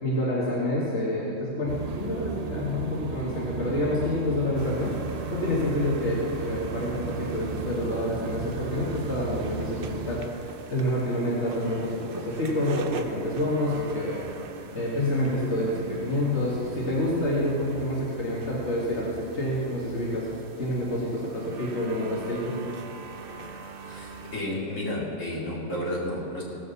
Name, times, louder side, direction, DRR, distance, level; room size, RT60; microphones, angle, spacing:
voice 1, 0.0-14.3 14.7-20.3 20.6-22.7, left 1 dB, 60° left, -6 dB, 2.3 m, -28 dB
sound 1, 1.6-10.3, right 6 dB, 70° right, 0.3 m, -35 dB
sound 2, 4.5-24.4, right 4 dB, 50° right, 0.9 m, -41 dB
voice 2, 23.8-26.4, left 1 dB, 80° left, -5 dB, 2.9 m, -32 dB
17.0 x 6.6 x 7.1 m, 2.6 s
omnidirectional pair, 1.3 m